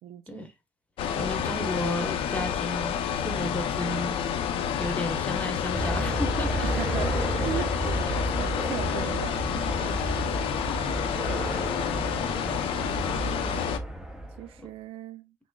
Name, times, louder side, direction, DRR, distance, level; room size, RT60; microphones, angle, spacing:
voice 1, 0.0-0.5 6.6-8.1 8.4-10.2 10.8-11.1 12.8-13.7 14.4-15.4, right 11 dB, 80° right, 0.4 m, -39 dB
sound 1, 1.0-13.8, left 8 dB, 75° left, 0.5 m, -29 dB
voice 2, 1.1-4.2 4.8-6.7 7.5-8.2 14.6-14.7, left 1 dB, 15° left, 1.0 m, -33 dB
sound 2, 5.7-14.5, right 1 dB, 5° right, 0.6 m, -32 dB
sound 3, 9.3-13.7, right 3 dB, 35° right, 1.2 m, -47 dB
6.0 x 2.0 x 2.3 m
cardioid pair, 110°, 9 cm